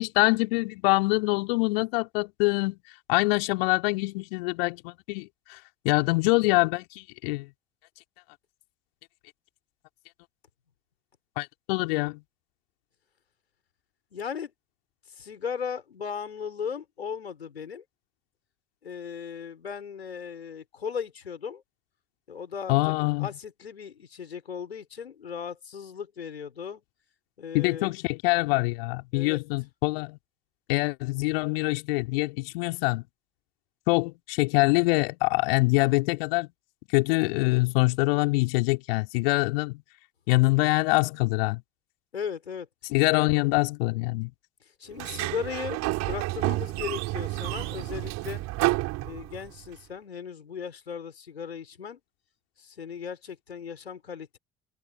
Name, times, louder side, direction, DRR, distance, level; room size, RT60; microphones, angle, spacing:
voice 1, 0.0-2.8 3.1-5.6 5.8-7.5 11.4-12.2 22.7-23.3 27.5-30.2 30.7-33.0 33.9-36.5 36.9-39.8 40.3-41.6 42.9-44.3, left 25 dB, 70° left, 3.7 m, -24 dB
voice 2, 14.1-14.5 15.1-17.8 18.8-21.6 22.3-26.8 27.4-28.0 29.1-29.4 42.1-42.7 44.6-48.4 49.0-52.0 52.6-54.4, left 7 dB, 85° left, 5.4 m, -37 dB
Sliding door, 44.9-49.7, right 19 dB, 60° right, 4.9 m, -30 dB
figure-of-eight pair, 55°, 31 cm